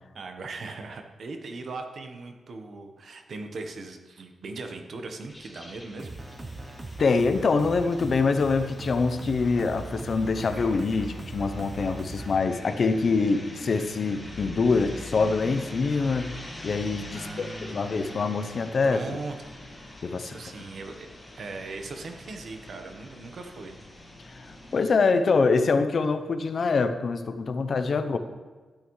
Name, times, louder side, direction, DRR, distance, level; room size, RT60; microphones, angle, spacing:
voice 1, 0.1-6.1 17.1-17.9 18.8-19.4 20.2-21.1 21.3-23.8, right 3 dB, 55° right, 5 dB, 1.0 m, -39 dB
sound 1, 5.3-24.9, left 1 dB, 15° left, 1.6 m, -44 dB
sound 2, 6.0-12.4, right 2 dB, 30° right, 0.8 m, -39 dB
voice 2, 7.0-16.3 16.6-19.0 20.0-20.4 24.7-28.2, left 4 dB, 45° left, 9 dB, 0.6 m, -25 dB
12.5 x 8.6 x 3.1 m, 1.4 s
wide cardioid pair, 140°, 0 cm